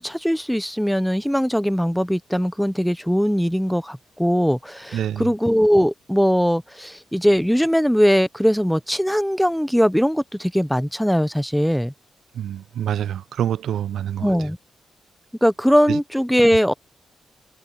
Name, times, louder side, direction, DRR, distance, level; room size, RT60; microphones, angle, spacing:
voice 1, 0.0-11.9 14.2-14.6 15.4-16.7, equal, ahead, 0.6 m, -20 dB
voice 2, 4.9-5.2 12.4-14.3 15.9-16.0, right 10 dB, 85° right, 0.4 m, -26 dB
cardioid pair, 100°, 0 cm